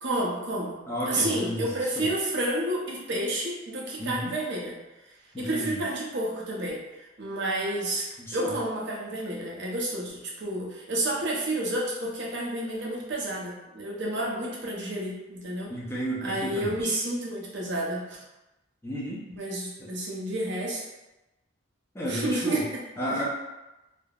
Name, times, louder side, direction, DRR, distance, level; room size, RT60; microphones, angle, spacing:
voice 1, 0.0-0.8 1.1-4.8 5.4-6.8 7.2-8.0 8.3-15.7 16.2-18.2 19.4-20.8 22.0-22.8, right 1 dB, 55° right, -4 dB, 0.6 m, -30 dB
voice 2, 0.9-1.7 2.0-2.1 4.0-4.3 5.3-5.8 8.2-8.5 15.7-17.0 18.8-19.2 21.9-22.6 23.0-23.2, equal, 10° left, -7 dB, 0.5 m, -32 dB
3.3 x 2.0 x 2.3 m, 1.0 s
head